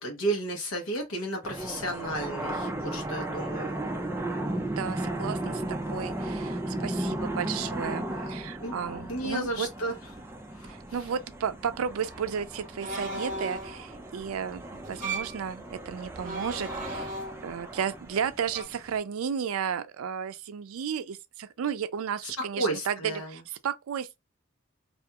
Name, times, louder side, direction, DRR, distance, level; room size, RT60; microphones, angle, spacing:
voice 1, 0.0-3.9 8.6-8.8 9.1-10.0 10.5-10.7 22.4-23.4, right 1 dB, 80° left, 0.8 m, -32 dB
sound 1, 1.4-19.0, right 1 dB, 10° right, 0.3 m, -36 dB
voice 2, 4.8-9.7 10.6-14.6 14.9-17.1 17.4-24.2, right 7 dB, 85° right, 0.4 m, -33 dB
sound 2, 12.8-13.8 14.9-15.4 16.2-17.6 18.5-18.6, right 2 dB, 40° right, 0.7 m, -36 dB
2.4 x 2.2 x 2.8 m
head